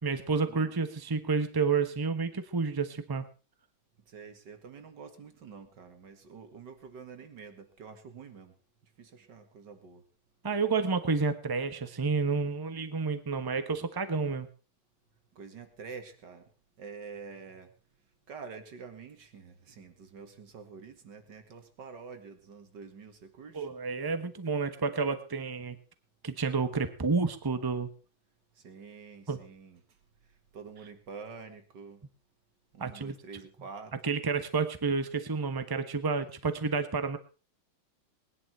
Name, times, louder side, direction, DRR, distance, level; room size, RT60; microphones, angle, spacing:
voice 1, 0.0-3.3 10.4-14.5 23.5-25.8 26.2-27.9 29.3-29.4 32.8-33.1 34.0-37.2, right 4 dB, 15° right, 10 dB, 0.9 m, -30 dB
voice 2, 4.0-8.6 8.8-10.1 15.3-16.5 16.8-23.7 28.5-32.1 32.7-34.0, right 5 dB, 55° right, 8 dB, 2.5 m, -47 dB
20.0 x 11.0 x 4.5 m, 0.34 s
omnidirectional pair, 2.3 m